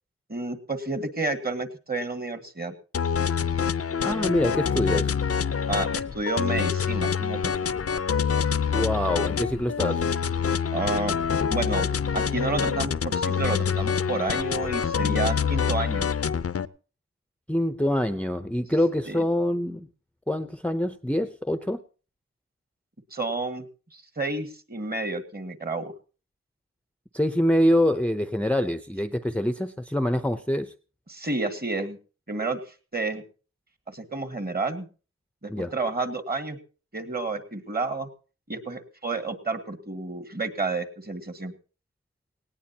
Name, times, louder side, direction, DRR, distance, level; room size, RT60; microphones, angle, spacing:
voice 1, 0.3-2.7 5.7-7.7 10.7-11.2 11.5-11.9 12.1-16.1 19.1-19.2 23.1-23.7 23.9-25.9 31.1-32.0 32.3-32.6 32.9-33.2 33.9-34.9 35.4-36.6 36.9-38.1 38.5-41.5, right 3 dB, 35° right, 1.8 m, -30 dB
sound 1, 2.9-16.7, left 7 dB, 55° left, 0.6 m, -26 dB
voice 2, 4.0-5.1 8.7-10.0 17.5-19.9 20.3-21.8 27.1-30.7 35.5-35.7, left 1 dB, 5° left, 0.7 m, -25 dB
18.5 x 18.0 x 2.9 m
wide cardioid pair, 70°, 29 cm